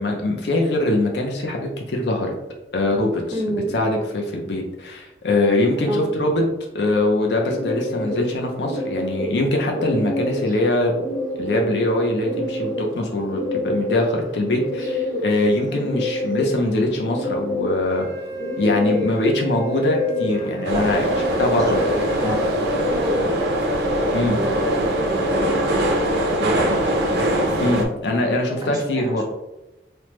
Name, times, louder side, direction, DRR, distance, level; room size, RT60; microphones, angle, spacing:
voice 1, 0.0-2.3 2.7-3.2 3.7-6.4 6.7-10.9 11.4-18.1 18.6-21.0 21.4-21.8 22.2-22.4 24.1-24.4 27.6-29.2, left 1 dB, 80° left, 2 dB, 0.5 m, -22 dB
voice 2, 3.3-3.7 5.8-6.2 15.7-15.9 20.7-21.6 21.9-23.3 24.0-26.8 28.6-29.2, equal, 20° right, 0 dB, 0.5 m, -31 dB
sound 1, 7.4-23.5, left 1 dB, 50° left, 1.4 m, -29 dB
Wind instrument woodwind instrument, 17.9-22.3, right 4 dB, 20° left, 0.8 m, -33 dB
sound 2, 20.6-27.8, right 1 dB, 70° right, 0.5 m, -22 dB
3.2 x 2.1 x 2.9 m, 0.97 s
head